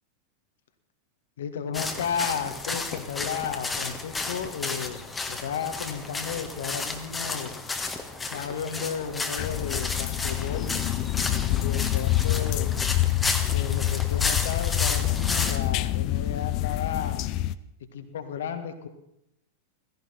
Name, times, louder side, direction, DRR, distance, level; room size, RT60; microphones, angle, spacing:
voice 1, 1.4-7.5 8.3-10.7 11.5-12.7 13.5-17.4 17.9-18.9, left 7 dB, 60° left, 8 dB, 1.5 m, -33 dB
sound 1, 1.7-15.6, left 3 dB, 10° left, 1.6 m, -32 dB
sound 2, 9.4-17.6, left 14 dB, 40° left, 0.6 m, -27 dB
16.5 x 16.0 x 4.4 m, 0.80 s
figure-of-eight pair, 90°, 0 cm